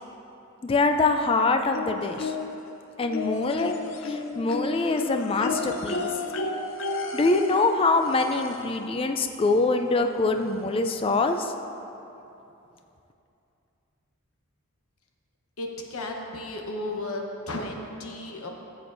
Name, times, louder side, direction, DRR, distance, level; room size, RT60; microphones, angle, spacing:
voice 1, 0.6-2.3 3.0-3.7 4.0-6.1 7.1-11.5, left 3 dB, 25° left, 6 dB, 0.3 m, -24 dB
sound 1, 1.7-2.7 3.1-8.8 10.0-10.1 10.5-10.6, left 3 dB, 65° left, 0.7 m, -32 dB
voice 2, 15.6-18.5, left 2 dB, 85° left, 2 dB, 1.0 m, -34 dB
13.5 x 7.8 x 2.6 m, 2.8 s
head